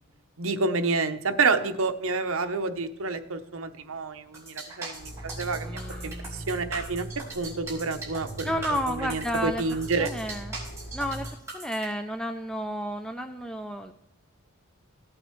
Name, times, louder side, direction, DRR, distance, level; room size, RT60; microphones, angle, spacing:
voice 1, 0.4-7.1 7.4-10.1, right 4 dB, 65° right, 8 dB, 0.8 m, -29 dB
sound 1, 4.3-11.9, right 3 dB, 15° right, 4.5 m, -40 dB
sound 2, 5.0-11.3, right 1 dB, 55° left, 3.6 m, -40 dB
voice 2, 5.6-6.5 8.4-9.6 10.0-10.6 10.9-11.3 11.5-13.9, equal, 5° left, 6 dB, 0.4 m, -32 dB
17.0 x 8.9 x 3.1 m, 0.82 s
head